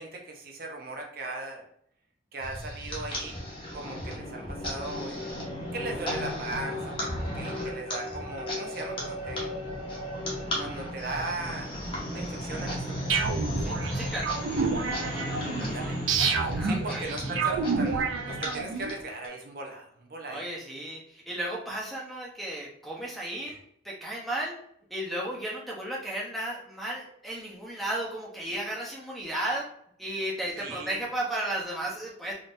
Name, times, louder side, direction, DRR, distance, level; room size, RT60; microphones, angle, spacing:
voice 1, 0.0-1.7 2.3-3.4 3.7-5.3 5.7-7.1 7.3-9.5 10.6-11.8 12.1-13.1 15.6-16.0 16.3-20.4 23.5-23.6 30.6-31.0, right 2 dB, 50° right, 1 dB, 0.6 m, -38 dB
sound 1, 2.4-19.3, equal, 25° left, 0.9 m, -35 dB
sound 2, 13.1-18.9, right 4 dB, 90° right, 0.4 m, -29 dB
voice 2, 13.6-14.3 16.5-17.1 20.3-23.5 23.8-24.5 24.9-29.7 30.0-32.3, right 1 dB, ahead, -4 dB, 0.7 m, -34 dB
3.6 x 2.6 x 2.5 m, 0.69 s
head